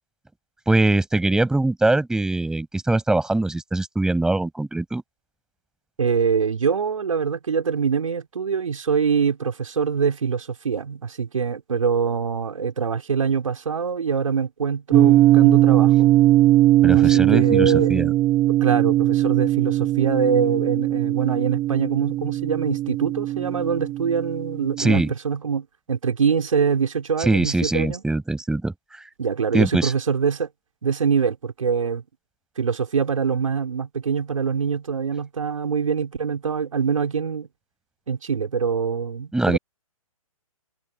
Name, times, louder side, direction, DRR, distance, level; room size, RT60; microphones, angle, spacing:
voice 1, 0.7-5.0 16.8-18.1 24.8-25.1 27.2-29.1 29.5-29.9 39.3-39.6, right 2 dB, 5° right, 7.5 m, -22 dB
voice 2, 6.0-16.1 16.9-17.9 18.6-28.0 29.2-30.5 30.8-32.0 32.6-37.5 38.1-39.6, right 6 dB, 65° right, 5.8 m, -24 dB
sound 1, 14.9-25.1, right 14 dB, 20° right, 2.9 m, -19 dB
figure-of-eight pair, 130°, 18 cm